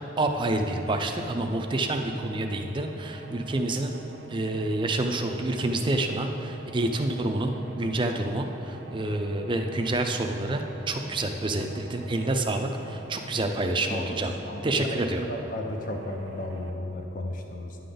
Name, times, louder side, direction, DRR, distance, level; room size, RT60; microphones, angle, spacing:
voice 1, 0.2-3.9 4.3-14.3 14.6-15.3, right 2 dB, 25° right, 4 dB, 0.4 m, -28 dB
sound 1, 1.1-16.7, right 2 dB, 65° right, 0.6 m, -46 dB
voice 2, 13.9-15.0 15.3-17.8, left 1 dB, 40° left, 3 dB, 0.6 m, -34 dB
10.0 x 3.9 x 6.8 m, 3.0 s
head